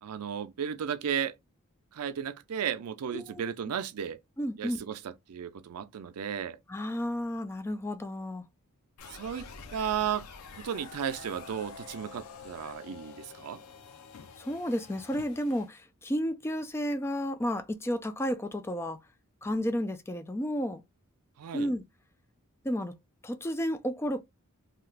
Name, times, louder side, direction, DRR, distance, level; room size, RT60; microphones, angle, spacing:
voice 1, 0.0-1.3 1.9-4.2 4.6-6.6 9.1-10.3 10.5-13.6 21.4-21.7, right 8 dB, 80° right, 0.4 m, -34 dB
voice 2, 4.4-4.8 6.7-8.4 14.4-19.0 19.4-20.8 21.5-21.8 22.6-22.9 23.2-24.2, equal, 10° left, 0.3 m, -32 dB
sound 1, 9.0-15.7, left 4 dB, 90° left, 0.6 m, -47 dB
2.8 x 2.3 x 3.3 m
head